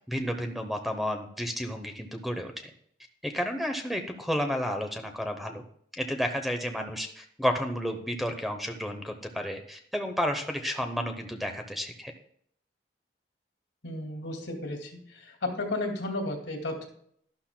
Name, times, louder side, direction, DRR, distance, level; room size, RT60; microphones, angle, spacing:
voice 1, 0.1-2.7 3.2-5.6 5.9-12.1, equal, ahead, 4 dB, 0.8 m, -31 dB
voice 2, 13.8-16.9, left 2 dB, 85° left, 2 dB, 2.3 m, -33 dB
12.0 x 12.0 x 2.2 m, 0.66 s
head